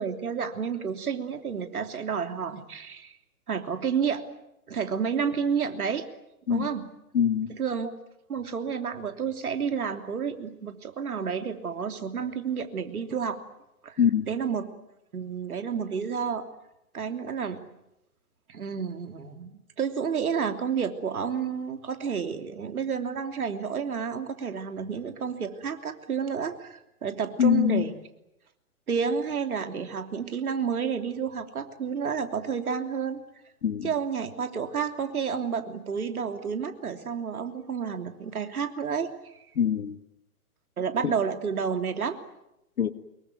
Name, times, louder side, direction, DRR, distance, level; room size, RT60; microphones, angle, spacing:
voice 1, 0.0-3.2 3.5-4.2 4.7-6.0 6.5-6.9 7.5-7.9 8.3-13.4 13.8-14.0 14.3-14.7 15.1-16.4 16.9-17.6 18.5-27.9 28.9-33.2 33.8-39.3 40.8-42.2, right 6 dB, 70° right, 3.2 m, -30 dB
voice 2, 7.1-7.5 14.0-14.3 27.4-27.8 33.6-33.9 39.6-40.0 41.0-41.1 42.8-42.9, left 8 dB, 70° left, 1.7 m, -23 dB
25.5 x 22.5 x 9.4 m
hypercardioid pair, 130°, 45 cm